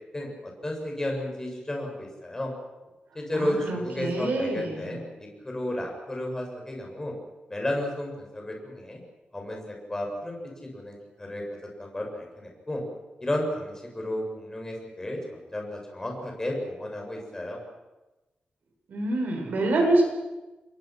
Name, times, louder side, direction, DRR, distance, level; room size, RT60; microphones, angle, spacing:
voice 1, 0.1-2.5 3.1-5.1 5.4-7.1 7.5-9.0 9.3-10.4 10.7-11.4 11.8-12.8 13.2-17.6, left 1 dB, 20° left, 1 dB, 7.1 m, -32 dB
voice 2, 3.3-5.0 18.9-20.0, right 2 dB, 75° right, 1 dB, 7.7 m, -26 dB
28.5 x 22.5 x 6.2 m, 1.1 s
wide cardioid pair, 130°, 3 cm